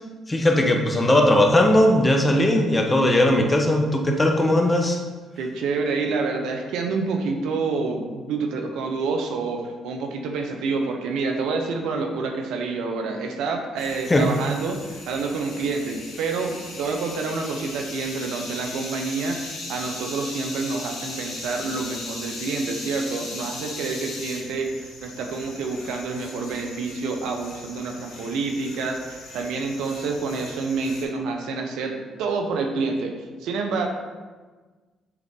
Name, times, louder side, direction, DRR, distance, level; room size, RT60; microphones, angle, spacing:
voice 1, 0.3-5.0 14.1-14.3, left 1 dB, 25° left, 2 dB, 1.1 m, -18 dB
voice 2, 5.4-33.1 33.4-33.9, right 4 dB, 75° right, 4 dB, 0.7 m, -28 dB
sound 1, 13.8-31.0, left 2 dB, 75° left, 1.9 m, -38 dB
7.9 x 3.8 x 3.7 m, 1.4 s
supercardioid pair, 55°, 0 cm